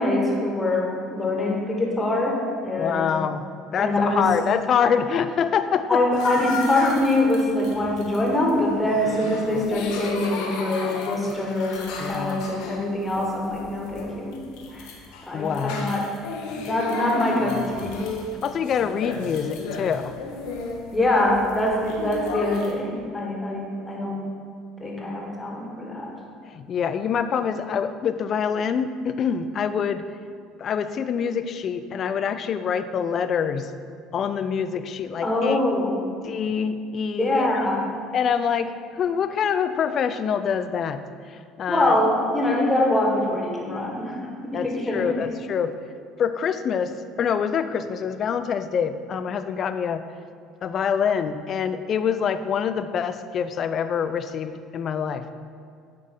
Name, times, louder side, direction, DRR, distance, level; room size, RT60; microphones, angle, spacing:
voice 1, 0.0-3.1 3.8-4.3 5.9-14.4 14.7-14.9 15.3-16.1 16.5-18.0 20.9-24.2 24.8-26.1 35.2-36.0 37.2-37.9 41.7-45.1, left 1 dB, 15° left, -2 dB, 1.6 m, -24 dB
voice 2, 2.8-3.5 3.7-6.0 9.5-9.6 12.0-12.4 15.3-15.9 18.4-20.2 26.5-30.0 30.6-33.7 34.1-35.6 36.2-37.6 38.1-41.0 41.3-42.0 44.5-45.8 46.2-50.0 50.6-55.3, left 7 dB, 50° left, 11 dB, 0.4 m, -25 dB
sound 1, 6.1-22.7, left 4 dB, 70° left, 0.9 m, -34 dB
9.5 x 3.8 x 3.7 m, 2.3 s
hypercardioid pair, 65°, 0 cm